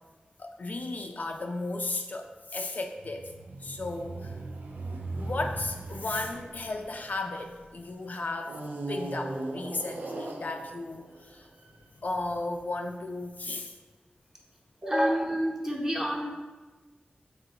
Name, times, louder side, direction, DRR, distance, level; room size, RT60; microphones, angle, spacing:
voice 1, 0.4-3.3 3.6-4.3 5.2-8.6 8.9-11.5 12.0-13.7, left 2 dB, 60° left, 3 dB, 0.3 m, -35 dB
sound 1, 3.0-7.7 8.4-11.8, right 2 dB, 75° right, 0.4 m, -39 dB
voice 2, 14.8-16.2, equal, 20° right, -3 dB, 0.9 m, -27 dB
3.9 x 3.7 x 2.8 m, 1.2 s
cardioid pair, 45°, 3 cm